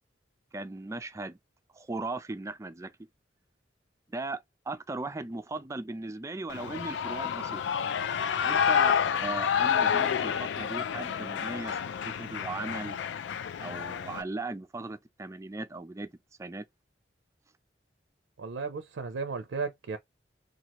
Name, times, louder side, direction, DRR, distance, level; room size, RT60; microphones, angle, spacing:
voice 1, 0.5-1.4 1.7-2.9 4.1-7.6 8.4-11.8 12.2-13.0 13.6-16.1 16.4-16.7, right 2 dB, 15° right, 0.3 m, -37 dB
Shout / Cheering, 6.5-14.2, left 8 dB, 75° left, 0.3 m, -29 dB
voice 2, 18.4-20.0, right 4 dB, 90° right, 0.4 m, -34 dB
2.9 x 2.4 x 2.9 m
head